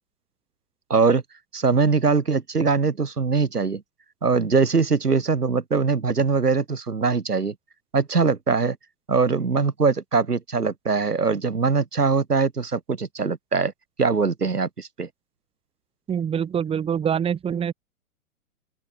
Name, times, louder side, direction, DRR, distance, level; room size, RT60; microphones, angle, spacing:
voice 1, 0.9-1.2 1.5-3.8 4.2-7.5 7.9-8.8 9.1-13.7 14.0-15.1, right 4 dB, 85° right, 1.6 m, -22 dB
voice 2, 16.1-17.7, right 8 dB, 10° right, 2.3 m, -25 dB
open air
figure-of-eight pair, 120°, 46 cm